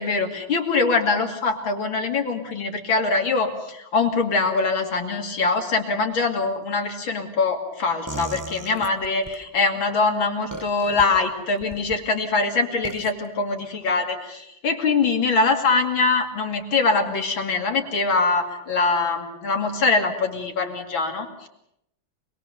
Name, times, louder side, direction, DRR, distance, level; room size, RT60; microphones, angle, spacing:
voice 1, 0.0-21.5, left 4 dB, 70° left, 3 dB, 3.2 m, -23 dB
sound 1, 8.1-9.4 10.5-11.0 11.6-12.0 12.8-13.1, right 2 dB, 25° right, 0.4 m, -36 dB
25.5 x 21.5 x 6.8 m, 0.80 s
omnidirectional pair, 2.2 m